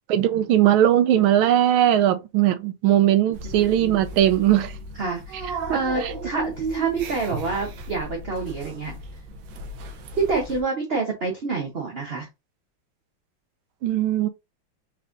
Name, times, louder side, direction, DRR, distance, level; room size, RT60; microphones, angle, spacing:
voice 1, 0.1-4.7 5.7-6.1 13.8-14.3, right 11 dB, 85° right, 1.5 m, -19 dB
sound 1, 3.3-10.6, right 2 dB, 70° right, 1.3 m, -35 dB
voice 2, 3.6-4.1 5.0-8.9 10.2-12.3, right 4 dB, 45° right, 0.8 m, -27 dB
4.3 x 4.2 x 2.5 m
omnidirectional pair, 2.2 m